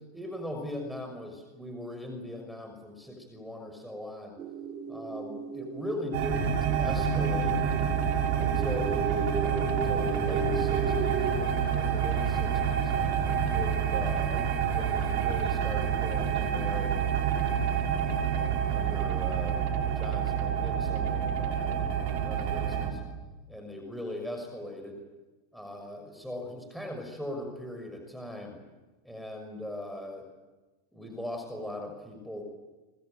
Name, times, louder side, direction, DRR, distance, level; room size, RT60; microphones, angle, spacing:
voice 1, 0.1-4.4 4.9-6.5 6.8-7.6 8.4-12.9 13.5-17.4 17.9-19.7 20.0-23.0 23.5-25.0 25.5-28.6 29.0-30.3 30.9-32.4, left 1 dB, ahead, 3 dB, 6.0 m, -40 dB
sound 1, 4.4-11.3, right 3 dB, 40° right, 3.1 m, -35 dB
sound 2, 6.1-22.9, right 7 dB, 65° right, 6.4 m, -28 dB
26.0 x 23.0 x 9.0 m, 1.2 s
hypercardioid pair, 110°, 0 cm